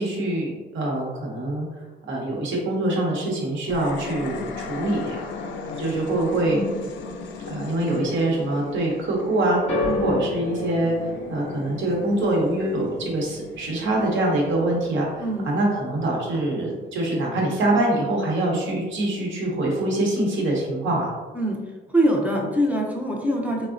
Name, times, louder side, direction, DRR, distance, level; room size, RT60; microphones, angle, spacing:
voice 1, 0.0-5.3 5.8-6.6 7.4-21.1, right 1 dB, 70° right, -2 dB, 0.9 m, -24 dB
sound 1, 3.7-15.0, left 4 dB, 70° left, 0.4 m, -37 dB
sound 2, 9.7-16.0 16.2-16.9 17.6-17.7, left 2 dB, 30° left, 0.7 m, -33 dB
voice 2, 9.8-10.2 15.2-15.5 21.4-21.6 21.9-23.7, equal, 5° right, -1 dB, 0.5 m, -24 dB
3.4 x 2.0 x 2.5 m, 1.3 s
cardioid pair, 90°, 20 cm